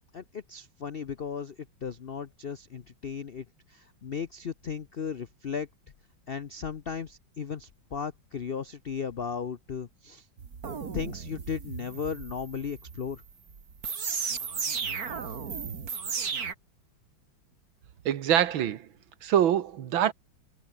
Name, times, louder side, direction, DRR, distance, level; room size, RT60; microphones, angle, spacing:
voice 1, 0.1-5.7 6.3-10.3 10.9-13.2, left 6 dB, 85° left, 0.5 m, -36 dB
sound 1, 10.4-16.5, right 6 dB, 50° right, 2.4 m, -35 dB
voice 2, 18.1-18.9 19.2-20.1, right 10 dB, 80° right, 2.0 m, -24 dB
omnidirectional pair, 2.2 m